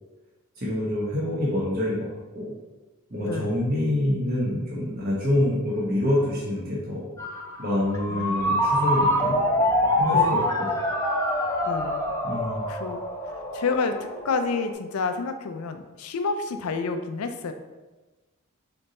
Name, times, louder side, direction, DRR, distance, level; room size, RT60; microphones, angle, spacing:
voice 1, 0.6-2.5 3.1-7.1 7.6-9.4 10.0-10.7 12.2-12.7, left 1 dB, 45° right, -6 dB, 0.9 m, -26 dB
voice 2, 3.2-3.6 8.1-8.6 10.1-10.4 11.6-12.0 12.7-13.0 13.5-14.0 14.2-17.5, left 4 dB, 80° left, 7 dB, 0.4 m, -29 dB
Ringtone, 7.2-14.7, left 1 dB, 15° left, 0.5 m, -25 dB
3.8 x 3.4 x 4.1 m, 1.2 s
head